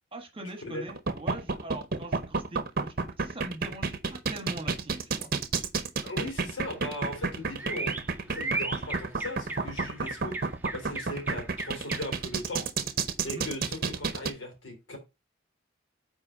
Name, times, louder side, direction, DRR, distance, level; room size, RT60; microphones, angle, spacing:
voice 1, 0.1-5.3 13.2-13.5, right 1 dB, 30° right, 1.3 m, -42 dB
sound 1, 0.9-14.3, right 4 dB, 50° right, 0.8 m, -30 dB
voice 2, 6.0-8.0 8.2-10.4 10.7-12.7 13.2-15.0, left 1 dB, 75° left, 3.1 m, -38 dB
sound 2, 6.7-12.3, right 2 dB, 10° right, 0.7 m, -37 dB
5.5 x 4.3 x 5.4 m
head